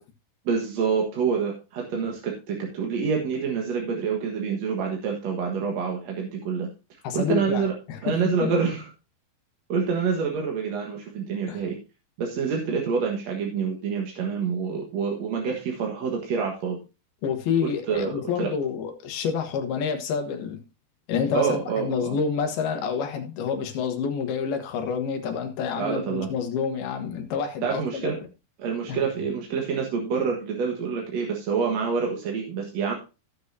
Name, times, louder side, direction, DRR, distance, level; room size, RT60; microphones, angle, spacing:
voice 1, 0.5-6.7 7.1-7.7 8.0-8.8 9.7-11.8 12.2-16.8 17.6-18.5 21.3-22.2 25.8-26.3 27.6-28.2 28.6-33.0, right 6 dB, 55° right, 2.2 m, -27 dB
voice 2, 7.0-8.2 8.4-8.5 11.5-11.7 17.2-20.6 21.1-28.1 28.9-29.0, left 6 dB, 85° left, 3.3 m, -28 dB
16.0 x 6.6 x 2.7 m
omnidirectional pair, 4.3 m